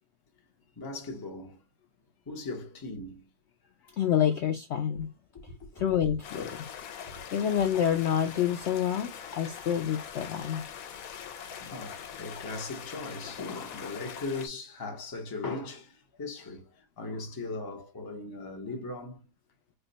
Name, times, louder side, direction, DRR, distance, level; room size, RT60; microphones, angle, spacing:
voice 1, 0.8-1.6 2.3-3.3 3.8-3.9 5.3-5.9 7.0-7.5 11.6-19.3, left 3 dB, 35° left, 0.3 m, -39 dB
voice 2, 4.0-5.1 5.8-6.7 7.3-10.6, left 9 dB, 85° left, 0.6 m, -28 dB
Stream, 6.2-14.5, left 8 dB, 70° left, 1.0 m, -43 dB
3.5 x 2.2 x 3.8 m
omnidirectional pair, 1.7 m